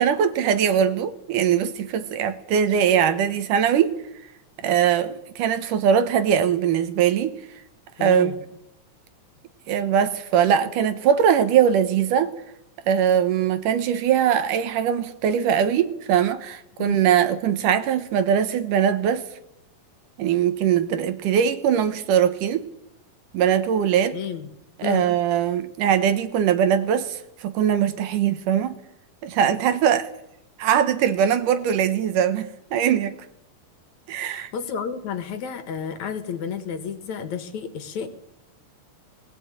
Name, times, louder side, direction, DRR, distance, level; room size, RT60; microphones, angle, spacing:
voice 1, 0.0-4.0 4.6-7.4 8.0-8.3 9.7-12.3 12.9-19.2 20.2-22.7 23.3-24.2 24.8-28.8 29.2-30.1 30.6-33.2 34.1-34.5, right 8 dB, 75° right, 2.6 m, -21 dB
voice 2, 8.0-8.4 16.8-17.0 24.1-24.5 24.8-25.1 34.3-38.1, left 7 dB, 60° left, 2.7 m, -31 dB
21.0 x 16.0 x 9.0 m
omnidirectional pair, 3.9 m